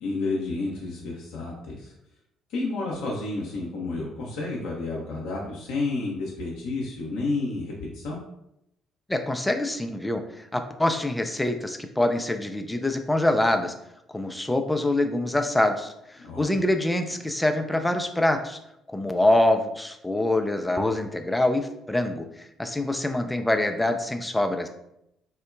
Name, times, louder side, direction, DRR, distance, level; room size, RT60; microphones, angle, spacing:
voice 1, 0.0-1.9 2.5-8.2 16.2-16.5, left 3 dB, 60° left, -4 dB, 0.5 m, -30 dB
voice 2, 9.1-10.2 10.5-13.7 14.1-15.9 16.4-18.6 18.9-24.7, left 1 dB, 10° left, 6 dB, 0.3 m, -25 dB
3.7 x 2.1 x 2.3 m, 0.80 s
figure-of-eight pair, 50°, 0 cm